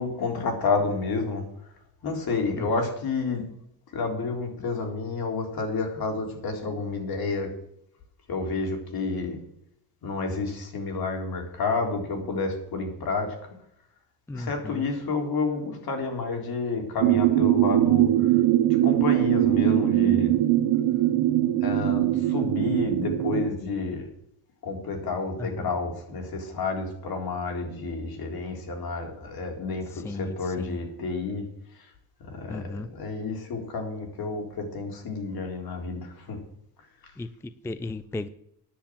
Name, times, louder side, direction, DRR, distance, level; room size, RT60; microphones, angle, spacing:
voice 1, 0.0-1.4 2.0-3.5 3.9-7.5 8.3-9.4 10.0-13.4 14.3-18.4 18.8-20.3 21.6-24.1 24.6-31.4 31.7-31.9 32.2-36.4 37.0-37.1, left 4 dB, 55° left, 3 dB, 3.8 m, -30 dB
voice 2, 14.3-14.8 25.4-25.7 29.9-30.8 32.5-32.9 37.2-38.3, left 2 dB, 5° left, 15 dB, 0.4 m, -35 dB
sound 1, 17.0-23.5, right 14 dB, 80° right, 1.0 m, -22 dB
10.5 x 7.0 x 8.7 m, 0.74 s
cardioid pair, 105°, 43 cm